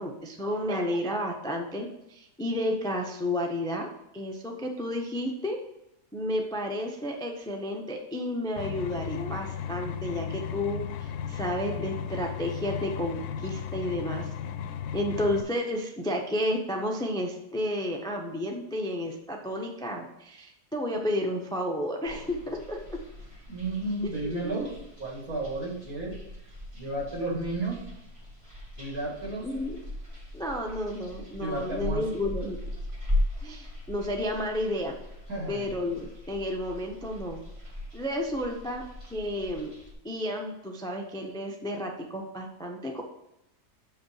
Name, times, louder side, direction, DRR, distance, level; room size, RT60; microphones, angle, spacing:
voice 1, 0.0-5.6 6.1-14.3 14.9-23.0 24.1-24.6 29.4-29.8 30.3-32.6 33.4-35.0 35.5-37.4 37.9-39.7 40.0-43.0, left 1 dB, 5° left, 2 dB, 0.5 m, -32 dB
sound 1, 8.6-15.4, left 8 dB, 80° left, 1.1 m, -35 dB
sound 2, 22.0-39.9, left 1 dB, 20° right, 1.7 m, -38 dB
voice 2, 23.5-24.7 25.0-26.1 26.7-27.8 28.8-29.5 31.4-32.0 35.3-35.7, right 2 dB, 60° right, -4 dB, 2.9 m, -32 dB
6.8 x 5.3 x 4.8 m, 0.85 s
omnidirectional pair, 1.6 m